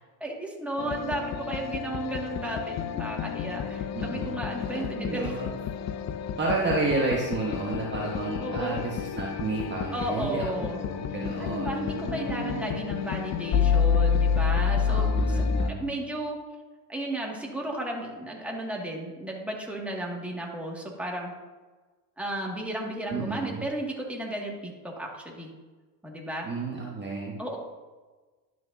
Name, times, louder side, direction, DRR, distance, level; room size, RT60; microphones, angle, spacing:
voice 1, 0.2-5.3 8.4-8.7 9.9-10.8 11.4-15.4 15.7-16.4 16.9-21.3 22.2-25.5 26.0-26.5 27.4-27.6, right 1 dB, 5° right, -2 dB, 2.2 m, -34 dB
sound 1, 0.8-15.7, left 6 dB, 35° left, 0.6 m, -29 dB
voice 2, 3.9-4.4 4.7-5.5 6.4-12.8 14.9-16.0 23.1-23.6 26.4-27.4, right 3 dB, 20° right, -3 dB, 1.4 m, -31 dB
11.0 x 6.2 x 2.8 m, 1.3 s
hypercardioid pair, 75°, 48 cm